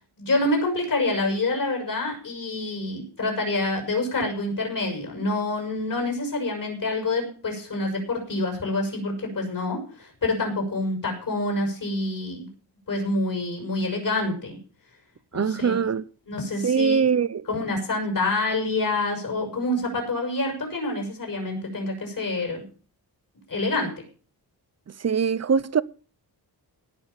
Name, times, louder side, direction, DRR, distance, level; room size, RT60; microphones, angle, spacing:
voice 1, 0.2-12.5 12.9-14.6 15.3-15.9 16.3-17.1 17.5-22.6 23.5-23.9, left 2 dB, 50° left, 6.1 m, -27 dB
voice 2, 15.3-16.0 16.6-17.4 25.0-25.8, right 6 dB, 40° right, 0.6 m, -22 dB
17.5 x 6.2 x 7.0 m
wide cardioid pair, 165°, 41 cm